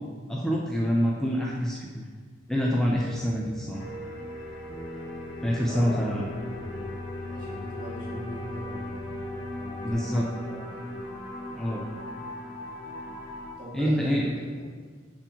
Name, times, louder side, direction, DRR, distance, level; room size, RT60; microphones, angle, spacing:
voice 1, 0.3-2.1 2.5-4.0 5.4-6.3 9.8-10.3 11.5-11.8 13.7-14.3, equal, 5° left, -4 dB, 0.5 m, -26 dB
sound 1, 2.9-9.9, left 1 dB, 80° right, 1.6 m, -41 dB
sound 2, 3.7-13.5, left 1 dB, 65° left, 1.7 m, -39 dB
voice 2, 5.5-6.0 7.3-9.0 9.6-10.9 13.6-14.3 14.6-14.7, equal, 45° right, -6 dB, 2.0 m, -40 dB
11.0 x 4.4 x 2.8 m, 1.6 s
head